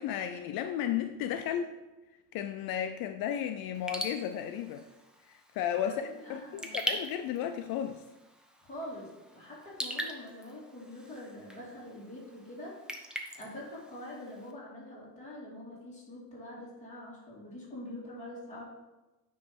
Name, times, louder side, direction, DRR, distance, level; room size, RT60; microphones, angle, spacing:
voice 1, 0.0-1.8 2.3-4.8 5.3-6.0 6.3-8.0, left 10 dB, 75° left, 8 dB, 0.5 m, -34 dB
Raindrop / Drip, 3.7-14.5, right 1 dB, ahead, 0.5 m, -42 dB
voice 2, 5.9-6.9 8.6-13.1 13.3-18.6, left 1 dB, 20° left, -6 dB, 2.5 m, -45 dB
9.3 x 3.2 x 5.2 m, 1.1 s
cardioid pair, 155°, 37 cm